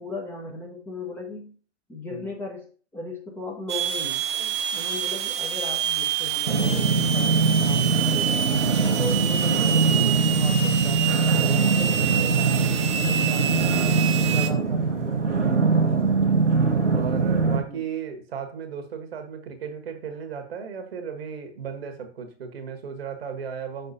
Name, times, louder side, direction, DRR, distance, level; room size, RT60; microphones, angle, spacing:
voice 1, 0.0-1.5 1.9-2.7 2.9-4.2 4.7-8.4 9.0-12.4 12.9-14.0 14.3-15.5 17.7-17.9, left 2 dB, 5° left, -2 dB, 0.9 m, -37 dB
sound 1, 3.7-14.5, right 9 dB, 25° right, 0.4 m, -27 dB
sound 2, 6.5-17.6, right 4 dB, 90° right, 1.0 m, -22 dB
voice 2, 12.7-13.1 15.7-16.2 16.9-23.9, right 7 dB, 60° right, 6 dB, 1.3 m, -36 dB
6.3 x 5.6 x 2.7 m, 0.39 s
figure-of-eight pair, 120°, 35 cm